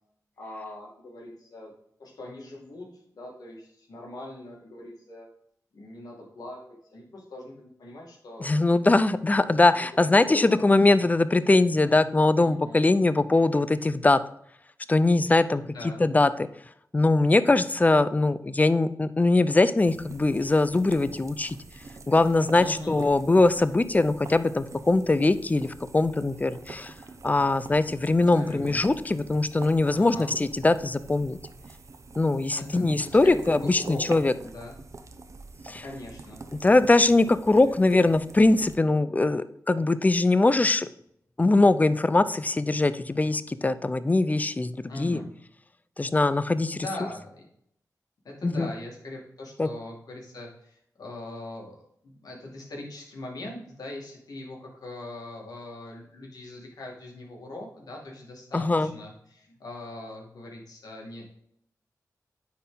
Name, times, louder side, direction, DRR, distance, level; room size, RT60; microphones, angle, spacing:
voice 1, 0.4-1.7 2.0-5.3 5.7-8.5 9.7-10.6 11.4-12.0 12.4-12.8 15.6-16.0 22.5-23.0 28.3-28.8 29.9-30.3 32.5-34.1 34.4-34.8 35.8-36.4 37.5-38.1 44.9-45.3 46.7-47.3 48.2-51.8 52.0-61.2, left 1 dB, 85° left, -1 dB, 2.3 m, -41 dB
voice 2, 8.4-14.2 14.9-15.6 16.0-16.3 16.9-21.6 22.1-26.9 27.2-31.4 32.2-34.3 35.7-35.8 36.5-40.9 41.4-45.2 46.0-46.9 48.4-48.7 49.6-49.7 58.5-58.9, left 2 dB, 25° left, 14 dB, 0.5 m, -22 dB
sound 1, 19.8-38.8, right 3 dB, 55° right, 0.8 m, -45 dB
9.5 x 4.2 x 3.9 m, 0.71 s
cardioid pair, 70°, 6 cm